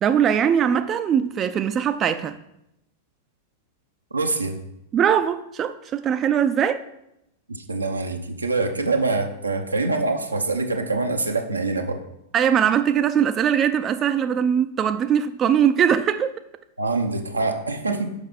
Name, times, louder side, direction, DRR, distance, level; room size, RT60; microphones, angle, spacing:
voice 1, 0.0-2.4 4.9-6.8 12.3-16.4, right 8 dB, 30° right, 0.3 m, -21 dB
voice 2, 4.1-4.6 7.5-12.0 16.8-18.1, right 3 dB, 90° right, 0.7 m, -25 dB
6.1 x 5.3 x 4.1 m
figure-of-eight pair, 95°, 0 cm